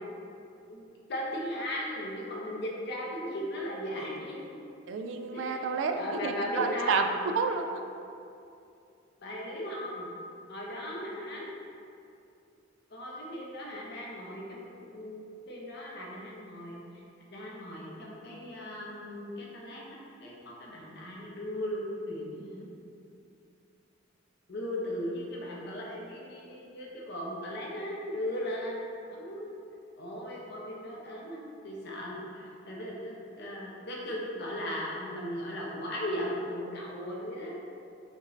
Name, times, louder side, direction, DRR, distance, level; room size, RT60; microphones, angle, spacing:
voice 1, 1.1-4.4 5.3-5.7 5.9-7.1 9.2-10.1 10.5-11.5 12.9-16.8 17.3-22.7 24.5-28.8 29.1-29.5 30.0-37.5, left 1 dB, 60° left, -3 dB, 0.7 m, -37 dB
voice 2, 4.9-7.8, right 4 dB, 65° right, 6 dB, 0.3 m, -30 dB
5.1 x 2.6 x 3.2 m, 2.6 s
head